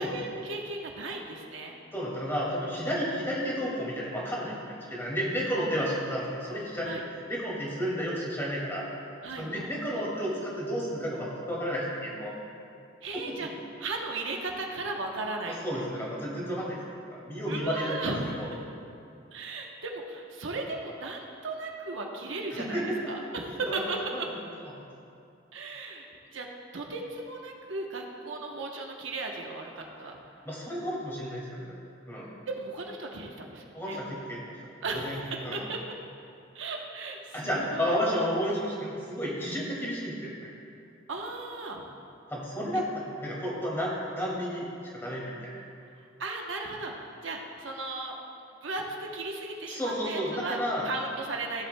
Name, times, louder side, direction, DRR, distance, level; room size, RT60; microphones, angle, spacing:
voice 1, 0.0-1.8 6.8-7.0 9.2-9.7 13.0-13.5 13.8-15.8 17.5-18.6 19.3-24.0 25.5-26.5 26.7-30.2 32.5-34.0 34.8-35.8 36.5-38.0 41.1-41.8 46.2-48.2 48.6-49.8 50.0-50.6 50.8-51.7, right 3 dB, 75° right, 1 dB, 1.0 m, -36 dB
voice 2, 1.9-6.9 7.3-8.9 9.4-12.3 13.1-13.4 15.6-16.8 17.1-18.5 22.5-23.1 23.7-23.8 30.4-31.8 32.1-32.3 33.7-35.2 35.4-35.6 37.3-40.5 42.3-45.5 49.7-50.9, equal, 15° left, -5 dB, 2.2 m, -32 dB
16.0 x 7.8 x 2.2 m, 2.5 s
head